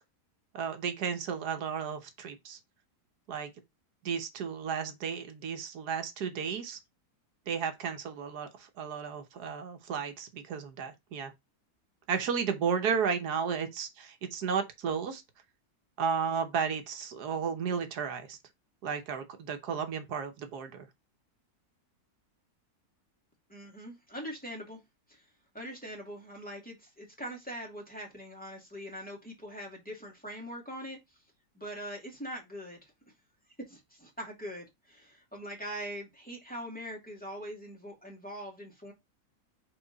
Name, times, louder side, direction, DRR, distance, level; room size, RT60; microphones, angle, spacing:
voice 1, 0.5-2.6 3.3-3.5 4.0-6.8 7.5-11.3 12.1-15.2 16.0-18.4 18.8-20.9, right 6 dB, 85° right, 1.5 m, -33 dB
voice 2, 23.5-24.8 25.1-25.2 25.5-31.0 31.5-32.8 33.7-38.9, equal, 5° left, 2.3 m, -42 dB
6.0 x 4.0 x 3.9 m
omnidirectional pair, 1.6 m